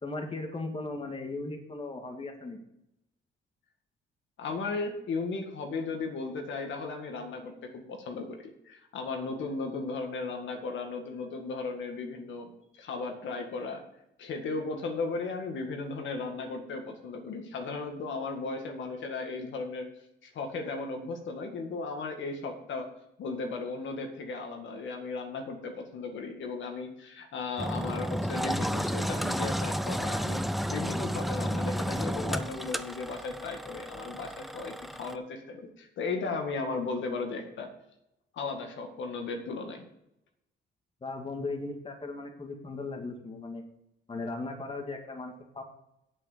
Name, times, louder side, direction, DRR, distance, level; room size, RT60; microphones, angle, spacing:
voice 1, 0.0-2.6 41.0-43.6 44.1-45.6, left 3 dB, 25° left, 3 dB, 2.0 m, -37 dB
voice 2, 4.4-13.8 14.2-19.9 20.2-22.9 23.2-37.7 38.3-39.8, left 3 dB, 70° left, 4 dB, 1.9 m, -36 dB
Engine, 27.6-35.1, equal, ahead, 0.6 m, -32 dB
8.2 x 7.7 x 6.7 m, 0.82 s
cardioid pair, 90°, 20 cm